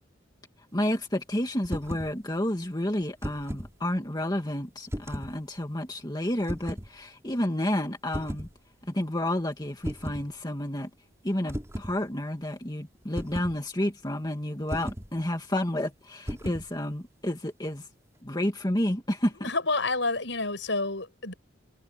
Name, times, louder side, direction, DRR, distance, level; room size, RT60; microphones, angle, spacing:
voice 1, 0.7-8.5 8.9-10.9 11.2-17.9 18.2-19.5, left 1 dB, 20° left, 2.1 m, -30 dB
sound 1, 1.6-2.1 3.0-3.7 4.9-5.4 6.4-6.9 8.1-8.5 9.8-10.3 11.5-11.9 13.2-13.6 14.7-15.1 16.3-16.7, equal, 15° right, 5.7 m, -35 dB
voice 2, 19.4-21.3, left 3 dB, 75° left, 6.7 m, -29 dB
head